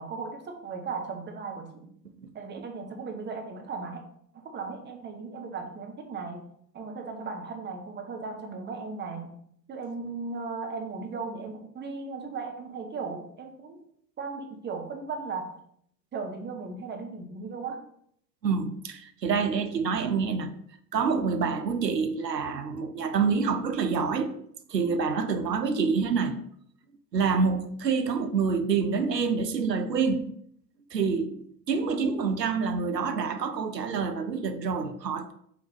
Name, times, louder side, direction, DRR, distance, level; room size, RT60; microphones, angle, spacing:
voice 1, 0.0-1.9 2.3-4.0 4.3-6.5 6.7-9.3 9.7-13.8 14.2-15.6 16.1-17.8, right 4 dB, 20° right, 1.1 m, -36 dB
voice 2, 18.4-20.5 20.9-24.3 24.7-26.4 27.1-30.3 30.9-35.3, right 5 dB, 85° right, 0.7 m, -27 dB
5.7 x 3.5 x 5.0 m
figure-of-eight pair, 75°, 48 cm